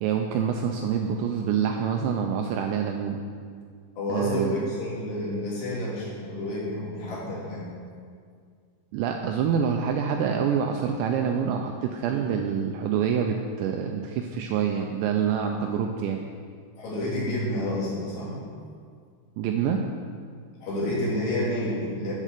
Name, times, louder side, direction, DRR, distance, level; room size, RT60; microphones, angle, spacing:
voice 1, 0.0-3.2 4.1-4.6 8.9-16.2 19.4-19.8, right 7 dB, 85° right, 3 dB, 2.6 m, -26 dB
voice 2, 4.0-7.7 16.8-18.4 20.6-22.1, left 1 dB, 70° left, -7 dB, 5.3 m, -29 dB
12.5 x 6.4 x 6.7 m, 2.1 s
omnidirectional pair, 5.6 m